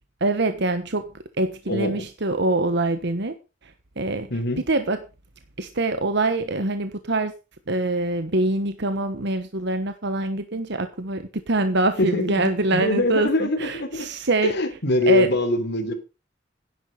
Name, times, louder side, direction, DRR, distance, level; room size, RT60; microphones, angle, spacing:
voice 1, 0.2-1.1 1.4-3.3 3.6-3.7 4.0-4.3 4.7-5.0 5.6-7.3 7.7-14.5 15.1-15.3, right 2 dB, 65° right, 1.3 m, -24 dB
voice 2, 1.7-2.0 4.3-4.6 12.0-14.1 14.4-15.9, left 2 dB, 60° left, 3.3 m, -23 dB
11.5 x 10.5 x 5.3 m
head